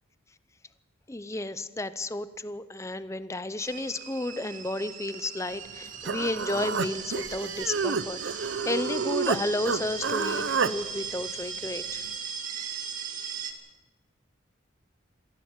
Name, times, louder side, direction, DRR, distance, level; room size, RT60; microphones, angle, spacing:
voice 1, 1.1-12.0, left 2 dB, 15° left, 13 dB, 0.6 m, -32 dB
sound 1, 3.6-13.5, right 7 dB, 40° right, 2.3 m, -38 dB
Human voice, 5.7-5.8 6.0-9.4 9.7-10.7, right 5 dB, 70° right, 0.7 m, -29 dB
22.5 x 16.0 x 7.4 m, 1.4 s
head